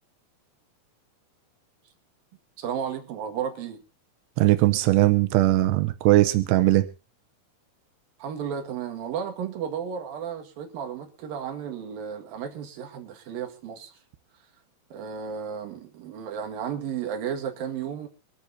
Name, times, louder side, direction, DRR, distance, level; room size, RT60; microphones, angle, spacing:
voice 1, 2.6-3.8 8.2-13.9 14.9-18.1, right 8 dB, 65° right, 3.5 m, -33 dB
voice 2, 4.4-6.9, right 17 dB, 90° right, 3.1 m, -20 dB
24.5 x 13.0 x 2.8 m
omnidirectional pair, 4.7 m